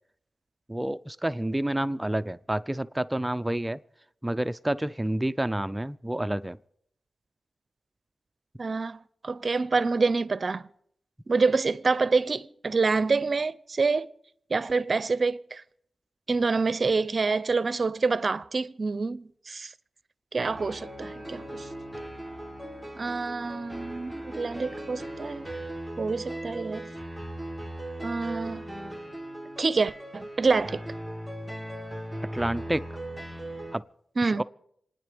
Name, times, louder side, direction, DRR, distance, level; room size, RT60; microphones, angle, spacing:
voice 1, 0.7-3.8 4.2-6.6 32.3-32.9 33.7-33.8 34.2-34.4, right 1 dB, 15° right, 0.6 m, -29 dB
voice 2, 8.6-10.7 11.3-14.1 14.5-15.6 16.3-19.7 20.3-21.7 22.9-25.5 26.0-26.9 28.0-28.6 29.6-30.8 34.2-34.4, right 4 dB, 50° right, 0.7 m, -27 dB
sound 1, 20.5-33.8, right 1 dB, 5° left, 1.9 m, -38 dB
26.5 x 9.9 x 5.2 m
cardioid pair, 60°, 0 cm